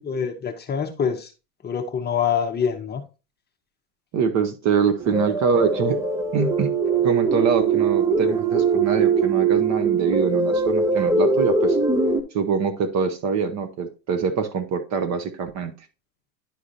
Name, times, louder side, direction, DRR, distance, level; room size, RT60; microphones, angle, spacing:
voice 1, 0.1-1.3 1.6-3.0, left 7 dB, 20° left, 0.8 m, -25 dB
voice 2, 4.1-6.0 6.3-6.7 7.0-11.8 12.3-15.8, right 6 dB, 35° right, 0.9 m, -24 dB
sound 1, 5.0-12.2, right 4 dB, 10° right, 0.3 m, -21 dB
10.0 x 4.8 x 2.7 m
hypercardioid pair, 105°, 49 cm